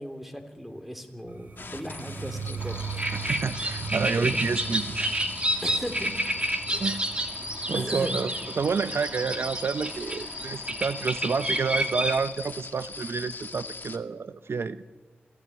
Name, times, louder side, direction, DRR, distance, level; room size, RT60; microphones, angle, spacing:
voice 1, 0.0-2.8 4.2-4.3 5.6-6.1 6.5-6.9 7.7-8.1, equal, 5° right, 6 dB, 3.2 m, -37 dB
sound 1, 1.3-11.1, right 5 dB, 45° right, 1.4 m, -40 dB
sound 2, 1.6-14.0, left 4 dB, 55° left, 1.7 m, -40 dB
sound 3, 2.6-12.2, right 1 dB, 25° right, 2.5 m, -30 dB
voice 2, 3.1-5.2 6.8-7.0 7.7-8.3 8.6-14.8, right 5 dB, 75° right, 12 dB, 0.7 m, -29 dB
27.5 x 16.0 x 9.5 m, 1.4 s
wide cardioid pair, 70°, 4 cm